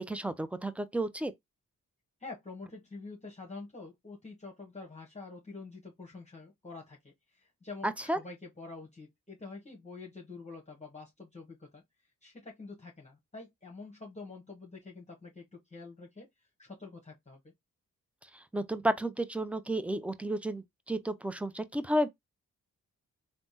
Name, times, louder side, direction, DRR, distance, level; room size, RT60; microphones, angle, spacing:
voice 1, 0.0-1.3 7.8-8.2 18.5-22.1, right 1 dB, 5° right, 0.4 m, -32 dB
voice 2, 2.2-11.8 12.2-16.3 16.6-17.5, left 3 dB, 20° left, 1.0 m, -47 dB
3.4 x 2.0 x 2.7 m
supercardioid pair, 45°, 34 cm